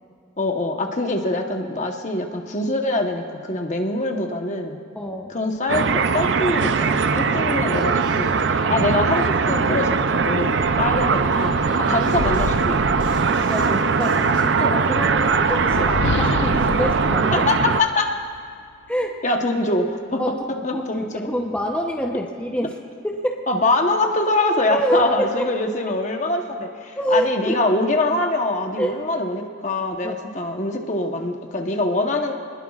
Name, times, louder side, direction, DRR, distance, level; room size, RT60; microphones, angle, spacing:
voice 1, 0.4-4.8 5.3-12.9 17.3-18.1 19.2-20.2 20.6-21.3 23.5-32.3, left 2 dB, 40° left, 3 dB, 1.1 m, -24 dB
voice 2, 4.9-5.4 13.5-17.5 18.9-19.2 20.2-22.8 23.0-23.4 24.7-25.4 27.0-27.6 28.8-28.9 30.0-30.2, equal, 5° left, 0 dB, 0.8 m, -26 dB
sound 1, 5.7-17.8, right 5 dB, 70° right, 0.5 m, -20 dB
sound 2, 7.7-14.4, right 1 dB, 40° right, 2.1 m, -38 dB
sound 3, 9.7-9.8 10.2-13.8 14.8-18.4, left 5 dB, 60° left, 0.4 m, -31 dB
24.5 x 20.0 x 2.4 m, 2.3 s
head